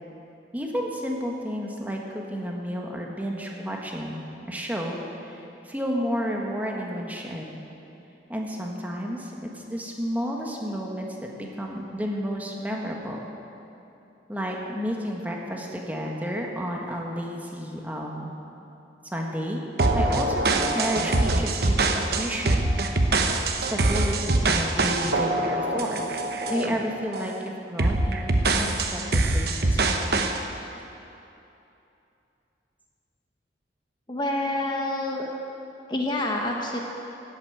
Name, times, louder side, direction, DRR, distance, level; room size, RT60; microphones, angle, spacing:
voice 1, 0.5-7.5 8.3-13.2 14.3-18.3 19.1-19.6 19.9-22.6 23.7-26.0 26.5-30.2 35.2-35.4, equal, 10° right, -1 dB, 1.4 m, -31 dB
sound 1, 19.8-26.7 27.1-27.4 27.8-30.4, right 2 dB, 60° right, 1.0 m, -24 dB
voice 2, 34.1-35.3 35.9-36.8, left 1 dB, 25° left, 0 dB, 1.2 m, -27 dB
14.5 x 8.4 x 9.3 m, 2.8 s
head